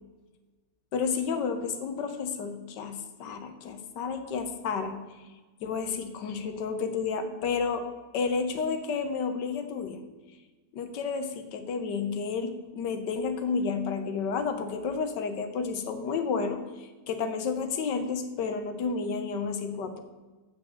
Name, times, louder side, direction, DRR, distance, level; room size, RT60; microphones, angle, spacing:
voice 1, 0.9-5.0 5.6-7.9 8.1-10.0 10.7-16.6 17.1-20.0, left 5 dB, 80° left, 8 dB, 1.4 m, -31 dB
8.2 x 6.0 x 7.5 m, 1.3 s
omnidirectional pair, 1.9 m